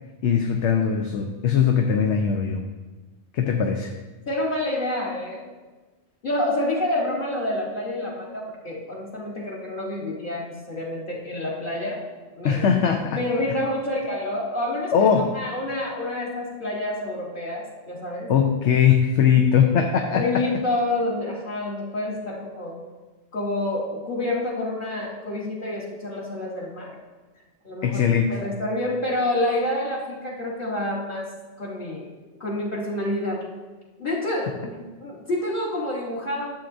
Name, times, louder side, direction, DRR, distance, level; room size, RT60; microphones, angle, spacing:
voice 1, 0.2-2.6 3.3-3.9 12.4-13.2 14.9-15.3 18.3-20.4 27.8-28.4, left 7 dB, 85° left, 4 dB, 1.0 m, -20 dB
voice 2, 4.3-5.5 6.2-12.0 12.4-12.6 13.1-14.9 15.3-18.3 20.1-22.8 23.3-26.9 27.6-31.3 31.6-32.1 32.4-33.5 34.0-36.5, left 1 dB, 50° left, -5 dB, 1.4 m, -28 dB
12.0 x 7.2 x 2.6 m, 1.2 s
omnidirectional pair, 1.2 m